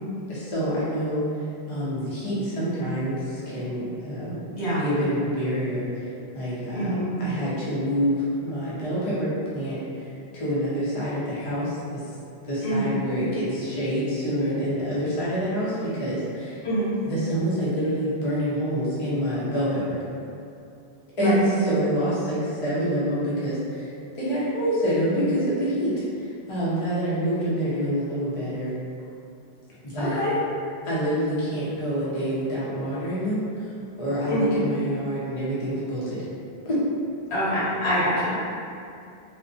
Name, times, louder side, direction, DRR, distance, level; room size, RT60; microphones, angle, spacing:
voice 1, 0.3-1.2 1.7-4.4 4.7-5.9 6.3-6.9 7.2-10.1 10.3-12.0 12.4-16.6 17.0-20.0 21.2-23.9 24.1-25.9 26.2-28.7 29.9-30.2 30.8-33.7 34.0-36.2 36.6-36.8, equal, 35° left, -10 dB, 0.6 m, -26 dB
voice 2, 6.7-7.1 12.6-12.9 16.6-16.9 21.2-21.4 30.0-30.4 34.3-34.5 37.3-38.5, equal, 80° left, -11 dB, 1.3 m, -25 dB
2.5 x 2.1 x 2.5 m, 2.5 s
omnidirectional pair, 1.1 m